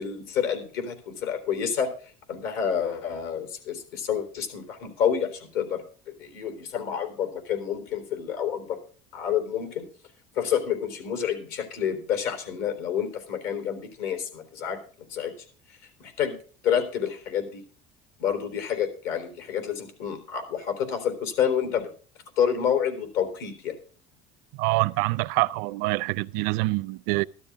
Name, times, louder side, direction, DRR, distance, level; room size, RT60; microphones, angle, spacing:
voice 1, 0.0-1.9 2.3-8.8 9.1-9.9 10.4-14.8 15.1-15.3 16.0-16.4 16.6-17.6 18.2-21.9 22.4-23.7, left 8 dB, 70° left, 3.7 m, -28 dB
voice 2, 24.6-27.2, right 22 dB, 80° right, 0.5 m, -25 dB
13.0 x 12.5 x 3.6 m
cardioid pair, 150°, 15 cm